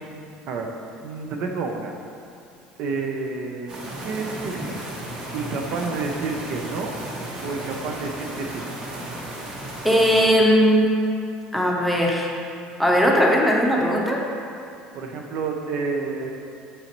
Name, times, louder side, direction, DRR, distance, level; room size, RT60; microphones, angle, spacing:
voice 1, 1.0-1.9 2.8-4.8 5.3-6.9 7.4-8.7 14.9-16.3, right 4 dB, 60° right, 2 dB, 0.6 m, -29 dB
sound 1, 3.7-10.3, right 1 dB, 35° right, 1.0 m, -34 dB
voice 2, 9.8-10.9 11.5-12.3 12.8-14.2, equal, ahead, -2 dB, 0.7 m, -18 dB
8.7 x 4.0 x 3.0 m, 2.5 s
cardioid pair, 135°, 3 cm